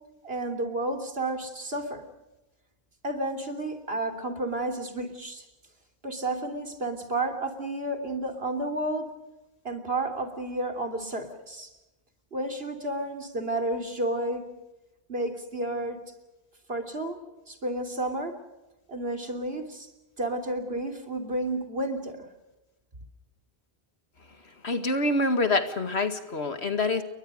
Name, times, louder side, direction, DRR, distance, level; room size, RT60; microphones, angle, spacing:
voice 1, 0.2-2.1 3.0-5.5 6.0-9.1 9.6-11.7 12.3-14.5 15.1-16.0 16.7-17.2 17.5-18.4 18.9-19.9 20.2-22.3, right 2 dB, 65° right, 3.5 m, -31 dB
voice 2, 24.6-27.0, left 2 dB, 75° left, 2.3 m, -26 dB
30.0 x 23.0 x 5.1 m
omnidirectional pair, 1.1 m